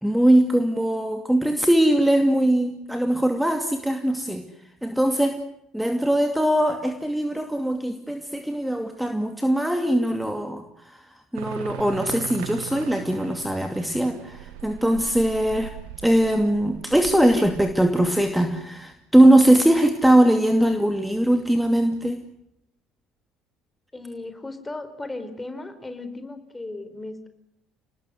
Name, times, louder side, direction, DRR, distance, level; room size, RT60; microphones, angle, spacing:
voice 1, 0.0-4.4 4.8-5.4 5.7-15.7 16.0-22.2, right 1 dB, 5° right, 6 dB, 2.5 m, -21 dB
sound 1, 11.3-18.6, right 12 dB, 65° right, 1.5 m, -40 dB
voice 2, 23.9-27.3, left 2 dB, 15° left, 9 dB, 4.6 m, -36 dB
29.0 x 20.0 x 8.0 m, 0.81 s
figure-of-eight pair, 55°, 0 cm